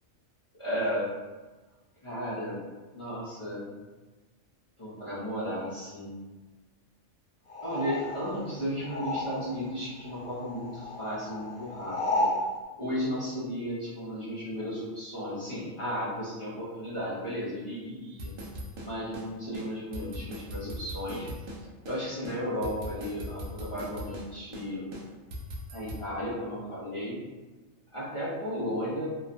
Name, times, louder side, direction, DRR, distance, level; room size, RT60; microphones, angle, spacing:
voice 1, 0.6-1.1 2.0-2.6 2.9-3.7 4.8-6.2 7.6-12.3 12.8-18.3 18.8-21.3 21.8-24.8 25.7-27.2 27.9-29.1, equal, 40° left, -10 dB, 0.4 m, -34 dB
sound 1, 7.5-9.7 10.0-12.4, left 2 dB, 15° right, 1.1 m, -33 dB
sound 2, 18.2-19.3 19.5-19.7 19.9-21.6 21.9-22.0 22.3-24.3 24.5-24.7 24.9-26.0, right 1 dB, 80° right, 1.0 m, -39 dB
2.8 x 2.2 x 2.4 m, 1.2 s
omnidirectional pair, 1.4 m